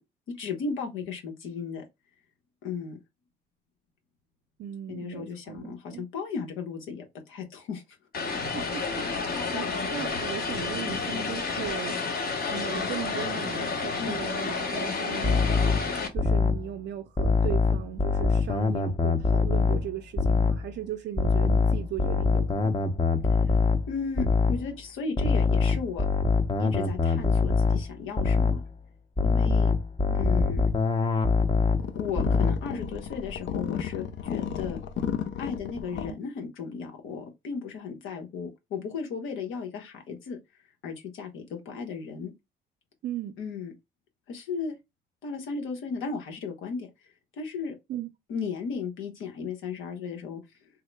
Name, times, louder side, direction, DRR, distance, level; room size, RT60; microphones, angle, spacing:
voice 1, 0.3-1.8 2.6-3.0 4.9-7.8 11.1-11.3 14.0-14.2 23.9-26.0 26.6-28.6 29.2-29.7 30.1-30.6 32.0-34.8 35.4-40.4 40.8-42.3 43.4-43.7 44.3-44.7 45.2-46.9 47.4-47.8 48.3-50.4, left 5 dB, 90° left, 1.1 m, -35 dB
voice 2, 4.6-6.0 8.5-12.0 12.5-15.7 16.1-22.7 30.1-30.2 36.1-36.2 43.0-43.4 47.9-48.1, right 11 dB, 60° right, 0.5 m, -37 dB
Vehicle, 8.1-16.1, left 4 dB, 50° left, 1.0 m, -30 dB
sound 1, 15.2-16.7 17.2-19.9 20.2-20.7 21.2-24.7 25.2-27.9 28.2-28.7 29.2-32.7, left 4 dB, 25° left, 0.7 m, -24 dB
sound 2, 31.8-36.1, left 8 dB, 70° left, 0.5 m, -33 dB
3.6 x 2.1 x 3.2 m
cardioid pair, 90°, 20 cm